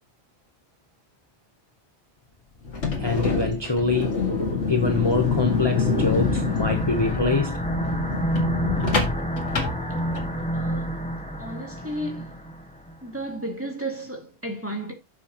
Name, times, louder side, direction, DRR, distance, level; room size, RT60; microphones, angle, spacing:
sound 1, 2.6-10.5, left 4 dB, 90° left, 2.5 m, -26 dB
voice 1, 3.0-4.2 4.7-7.6, left 3 dB, 25° left, 1.1 m, -24 dB
sound 2, 4.3-13.0, right 1 dB, 5° left, 0.9 m, -30 dB
voice 2, 10.5-10.9 11.4-12.3 13.0-14.9, right 1 dB, 10° right, 2.5 m, -33 dB
11.0 x 7.2 x 3.0 m
omnidirectional pair, 1.2 m